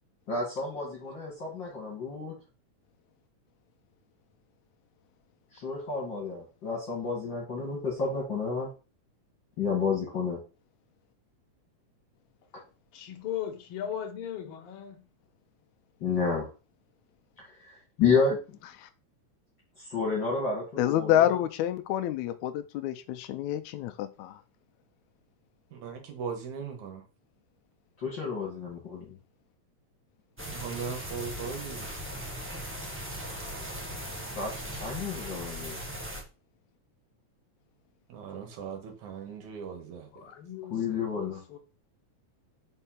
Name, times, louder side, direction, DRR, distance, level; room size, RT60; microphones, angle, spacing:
voice 1, 0.3-2.3 5.6-8.7 9.6-10.4 16.0-16.5 17.4-18.6 19.9-21.1 28.0-29.1 34.3-35.8 40.7-41.4, left 5 dB, 40° left, 2.5 m, -30 dB
voice 2, 12.9-15.0 40.1-41.6, left 10 dB, 60° left, 2.0 m, -38 dB
voice 3, 20.8-24.4, left 12 dB, 90° left, 2.0 m, -28 dB
voice 4, 25.7-27.0 30.4-31.9 38.1-40.1, right 6 dB, 85° right, 2.9 m, -38 dB
sound 1, 30.4-36.2, equal, 10° right, 0.5 m, -38 dB
5.5 x 4.5 x 5.7 m
omnidirectional pair, 3.3 m